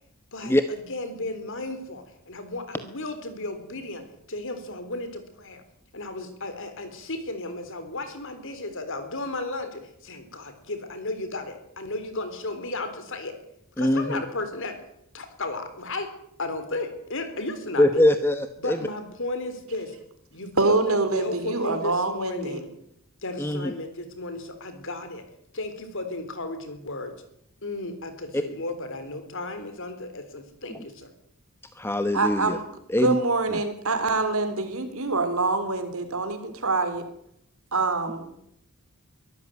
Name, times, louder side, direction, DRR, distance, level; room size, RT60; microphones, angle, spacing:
voice 1, 0.3-5.6 5.9-13.4 13.8-14.8 15.1-16.1 16.4-18.0 18.6-20.0 20.3-22.8 23.2-25.3 25.5-27.2 27.6-31.1, left 2 dB, 60° left, 9 dB, 4.0 m, -34 dB
voice 2, 13.8-14.2 17.8-18.8 23.4-23.7 31.8-32.6 32.9-33.1 33.5-33.6, left 1 dB, 10° left, 9 dB, 1.0 m, -22 dB
voice 3, 20.6-22.6 32.1-32.7 33.0-37.1 37.7-38.3, right 3 dB, 70° right, 8 dB, 3.9 m, -25 dB
23.5 x 13.5 x 9.4 m, 0.75 s
head